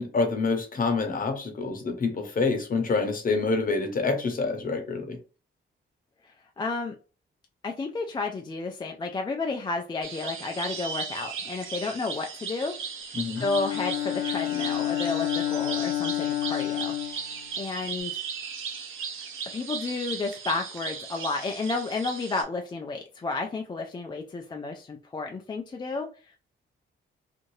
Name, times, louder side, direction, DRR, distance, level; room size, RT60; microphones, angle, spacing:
voice 1, 0.0-5.2 13.1-13.4, left 4 dB, 45° left, 0.8 m, -27 dB
voice 2, 6.6-6.9 7.6-12.7 13.4-18.2 19.5-26.1, left 3 dB, 20° left, 0.3 m, -32 dB
sound 1, 10.0-22.4, right 6 dB, 90° right, 0.7 m, -37 dB
Bowed string instrument, 13.4-18.0, left 14 dB, 80° left, 0.5 m, -30 dB
2.6 x 2.5 x 3.1 m
cardioid pair, 115°, 20 cm